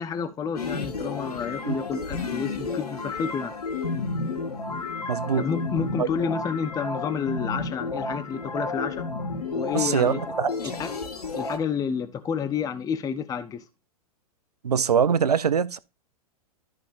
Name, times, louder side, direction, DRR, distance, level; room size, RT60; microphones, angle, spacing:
voice 1, 0.0-3.5 5.4-9.1 9.5-10.3 10.6-10.9 11.4-13.6, left 6 dB, 20° left, 0.8 m, -30 dB
sound 1, 0.6-11.6, left 3 dB, 75° left, 1.9 m, -32 dB
voice 2, 5.1-5.4 6.0-6.1 9.7-10.5 14.6-15.8, right 7 dB, 80° right, 0.7 m, -23 dB
13.5 x 5.4 x 2.5 m
figure-of-eight pair, 100°, 20 cm